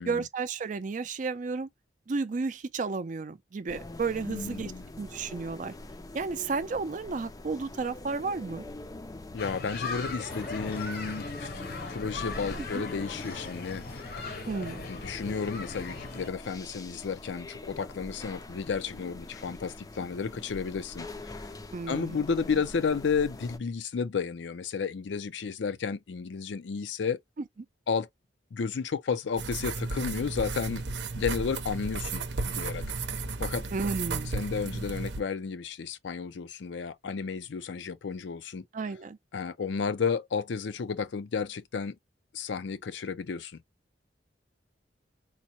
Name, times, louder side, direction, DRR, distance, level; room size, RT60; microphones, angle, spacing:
voice 1, 0.0-1.7 2.1-4.7 5.0-5.7 6.1-8.6 12.6-12.8 14.5-14.9 21.7-22.2 33.7-34.3 38.7-39.2, right 4 dB, 45° right, 0.4 m, -32 dB
sound 1, 3.7-23.6, left 2 dB, 20° left, 0.4 m, -44 dB
voice 2, 4.3-4.9 9.3-14.2 14.9-21.1 21.4-21.5 21.9-27.2 27.9-28.1 28.5-30.8 31.1-32.9 33.4-33.6 34.3-38.6 39.3-42.0 42.3-43.5, left 5 dB, 80° left, 0.5 m, -32 dB
sound 2, 9.4-16.3, left 3 dB, 55° left, 0.8 m, -39 dB
sound 3, 29.4-35.2, right 3 dB, 75° right, 0.7 m, -34 dB
4.0 x 2.1 x 2.8 m
head